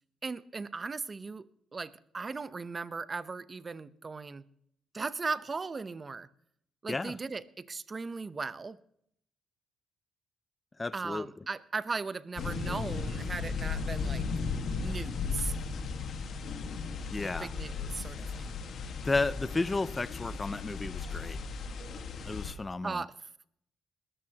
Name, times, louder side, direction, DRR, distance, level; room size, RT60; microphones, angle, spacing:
voice 1, 0.2-4.4 4.9-6.3 6.8-8.8 10.9-14.3 14.8-15.5 17.2-18.5 22.8-23.3, right 4 dB, 30° right, 15 dB, 0.8 m, -38 dB
voice 2, 10.8-11.3 17.1-17.5 19.0-21.4 22.3-23.0, left 3 dB, 20° left, 16 dB, 0.5 m, -32 dB
sound 1, 12.4-22.5, left 5 dB, 60° left, 1.7 m, -36 dB
20.5 x 13.5 x 2.9 m, 0.69 s
cardioid pair, 90°, 0 cm